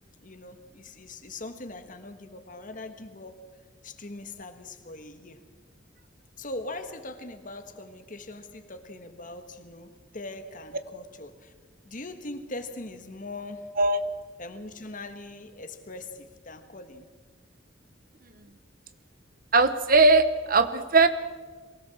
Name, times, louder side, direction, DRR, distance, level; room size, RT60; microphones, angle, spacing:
voice 1, 0.2-3.4 3.8-5.4 6.4-11.5 11.8-13.8 14.4-17.0, left 2 dB, 45° left, 8 dB, 1.6 m, -41 dB
voice 2, 19.5-21.1, right 3 dB, 50° right, 11 dB, 1.0 m, -19 dB
23.0 x 17.0 x 7.2 m, 1.4 s
head